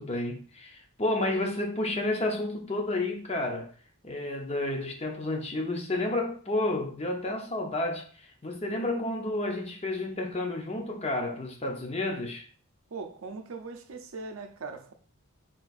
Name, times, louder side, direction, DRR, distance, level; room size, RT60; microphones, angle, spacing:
voice 1, 0.0-3.7 4.0-12.5, left 2 dB, 30° left, 0.7 m, -31 dB
voice 2, 12.9-14.9, right 4 dB, 65° right, 0.5 m, -40 dB
4.2 x 3.8 x 2.4 m
head